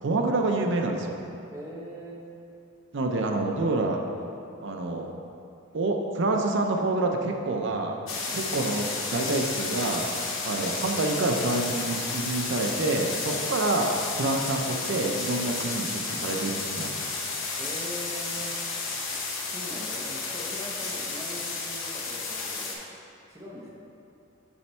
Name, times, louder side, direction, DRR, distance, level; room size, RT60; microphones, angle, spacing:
voice 1, 0.0-1.2 2.9-4.0 4.6-5.1 5.7-8.0 8.3-10.0 10.4-13.9 14.2-17.0, right 2 dB, 60° right, 2 dB, 0.5 m, -27 dB
voice 2, 1.5-2.2 8.3-8.4 13.2-13.5 17.6-18.6 19.5-22.8 23.3-23.7, equal, 15° right, -5 dB, 1.0 m, -41 dB
sound 1, 8.1-22.8, left 3 dB, 65° left, 0.8 m, -32 dB
7.0 x 3.4 x 4.4 m, 2.7 s
head